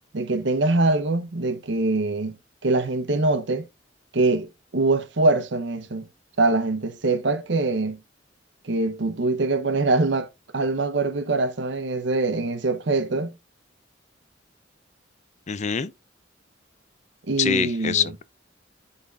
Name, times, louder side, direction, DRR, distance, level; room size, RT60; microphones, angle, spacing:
voice 1, 0.1-2.4 2.6-3.6 4.1-4.5 4.7-6.1 6.4-8.0 8.6-10.3 10.5-13.3 17.3-18.1, right 2 dB, 70° right, 0.8 m, -23 dB
voice 2, 15.5-15.9 17.4-18.2, left 7 dB, 40° left, 0.4 m, -24 dB
11.5 x 4.1 x 2.4 m
head